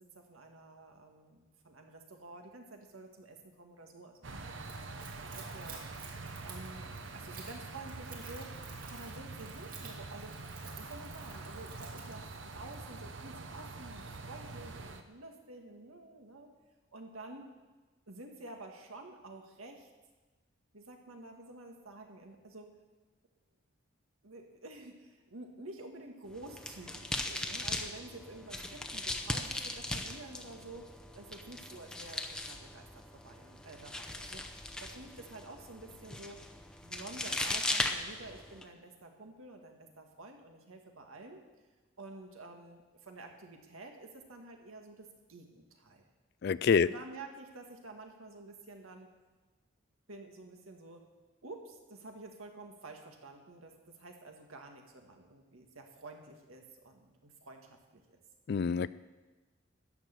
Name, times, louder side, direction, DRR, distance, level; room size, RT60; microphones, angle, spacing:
voice 1, 0.0-10.3 10.8-16.5 16.9-17.5 18.1-19.9 20.7-22.7 24.2-34.4 34.8-36.4 36.8-41.4 42.0-46.1 46.7-49.1 50.1-51.1 51.4-58.2, right 2 dB, 85° right, 3 dB, 1.9 m, -50 dB
sound 1, 4.2-15.0, right 3 dB, 65° right, 0.9 m, -45 dB
Splash splatter / Trickle dribble, 4.6-12.9, right 5 dB, 40° right, 2.0 m, -53 dB
sound 2, 26.3-38.6, left 1 dB, 5° left, 0.7 m, -39 dB
voice 2, 46.4-46.9 58.5-58.9, left 6 dB, 50° left, 18 dB, 0.3 m, -26 dB
14.0 x 6.5 x 9.0 m, 1.2 s
head